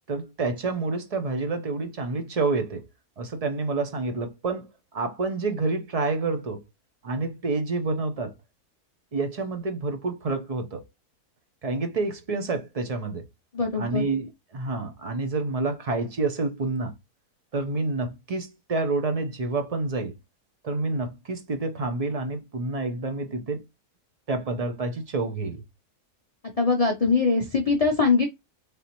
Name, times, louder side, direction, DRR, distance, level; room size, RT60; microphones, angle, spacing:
voice 1, 0.1-2.8 3.2-6.6 7.0-8.3 9.1-10.8 11.6-13.2 13.8-16.9 17.5-20.1 20.6-23.6 24.3-25.6, right 3 dB, 50° right, 0.4 m, -28 dB
voice 2, 13.5-14.0 26.6-28.3, left 4 dB, 60° left, 0.3 m, -22 dB
4.0 x 3.4 x 3.0 m
omnidirectional pair, 1.7 m